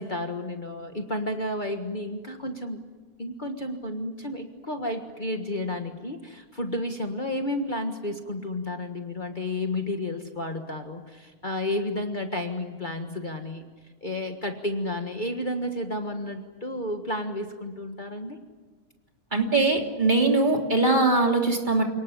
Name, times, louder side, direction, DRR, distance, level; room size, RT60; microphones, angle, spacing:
voice 1, 0.0-2.8 3.2-13.7 14.0-18.4, left 1 dB, 30° left, 5 dB, 1.7 m, -31 dB
voice 2, 19.3-21.8, right 3 dB, 30° right, 2 dB, 3.2 m, -21 dB
28.5 x 19.0 x 9.9 m, 1.4 s
omnidirectional pair, 1.6 m